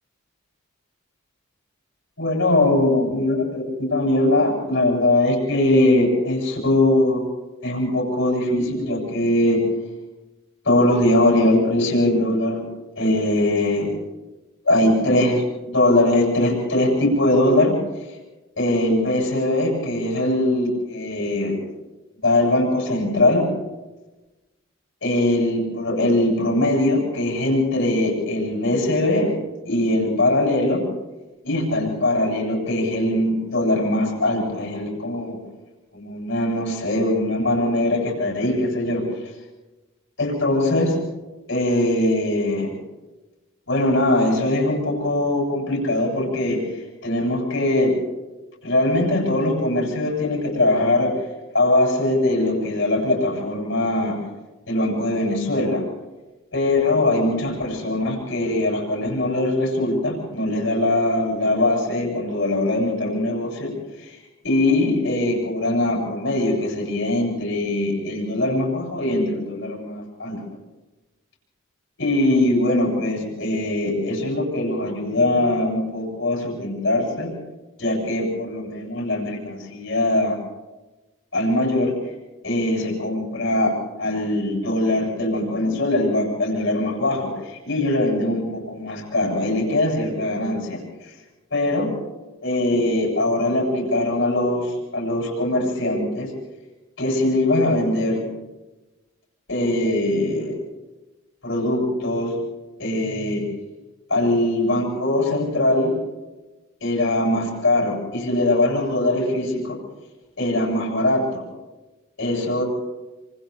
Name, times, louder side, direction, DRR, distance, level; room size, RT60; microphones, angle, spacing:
voice 1, 2.2-7.2 7.6-9.7 10.6-12.7 13.0-13.9 14.6-17.8 18.6-21.6 22.2-23.6 25.0-29.4 29.6-30.9 31.4-35.4 35.9-39.1 40.2-41.0 41.5-42.7 43.7-48.0 48.6-51.2 51.5-54.2 54.7-55.9 56.5-63.7 64.0-64.2 64.4-70.4 72.0-77.4 77.8-80.4 81.3-82.0 82.4-90.8 91.5-92.0 92.4-96.3 97.0-98.2 99.5-100.6 101.4-102.5 102.8-103.5 104.1-106.0 106.8-109.8 110.4-111.4 112.2-112.7, left 1 dB, 65° left, -2 dB, 7.6 m, -21 dB
29.0 x 27.0 x 3.3 m, 1.1 s
head